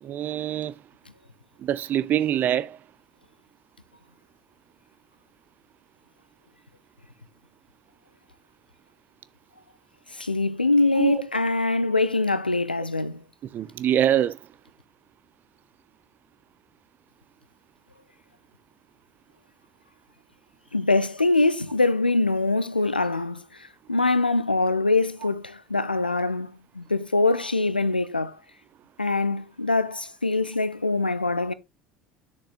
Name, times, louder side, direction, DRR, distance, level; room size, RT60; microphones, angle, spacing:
voice 1, 0.0-0.7 1.6-2.8 11.0-11.1 13.5-14.4, right 10 dB, 40° right, 0.6 m, -24 dB
voice 2, 10.1-13.2 20.7-28.4 29.0-31.5, left 3 dB, 85° left, 0.4 m, -24 dB
10.5 x 6.7 x 2.6 m
figure-of-eight pair, 65°, 5 cm